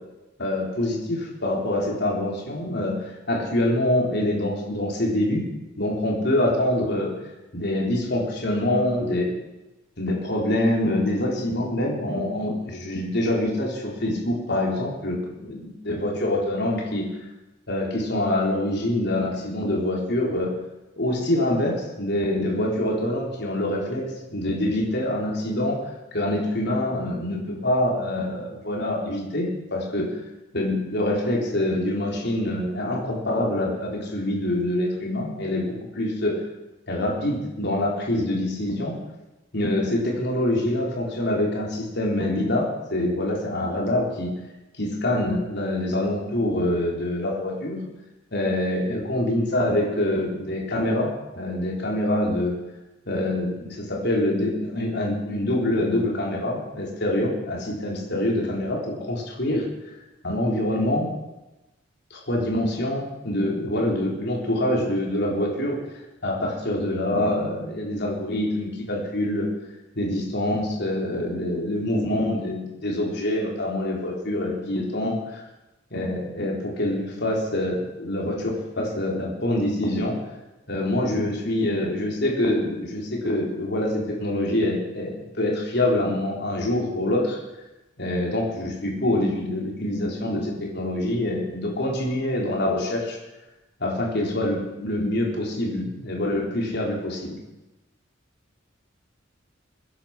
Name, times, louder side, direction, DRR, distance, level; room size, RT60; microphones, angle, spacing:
voice 1, 0.4-5.5 5.8-7.1 7.5-9.3 10.0-17.1 17.7-20.5 21.0-24.0 24.3-25.8 26.1-30.1 30.5-36.3 36.9-38.9 39.5-44.3 44.8-47.8 48.3-51.1 51.3-52.5 53.1-59.6 60.2-61.1 62.1-65.8 66.2-69.5 70.0-75.4 75.9-80.2 80.7-87.4 88.0-93.2 93.8-97.4, left 1 dB, 60° left, -1 dB, 3.8 m, -25 dB
22.0 x 10.0 x 5.9 m, 1.0 s
head